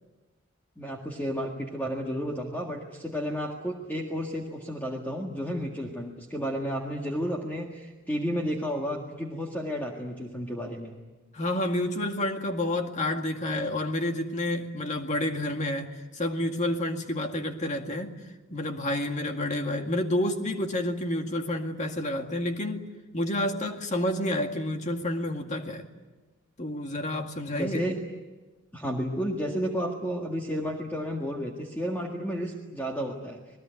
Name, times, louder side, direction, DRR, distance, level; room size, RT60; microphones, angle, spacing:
voice 1, 0.8-11.0 27.5-28.0 28.7-33.4, equal, 10° left, -1 dB, 1.9 m, -32 dB
voice 2, 11.3-18.1 18.5-22.8 23.1-25.9 26.6-27.8, left 1 dB, 35° left, 4 dB, 2.1 m, -29 dB
28.0 x 20.0 x 9.3 m, 1.2 s
head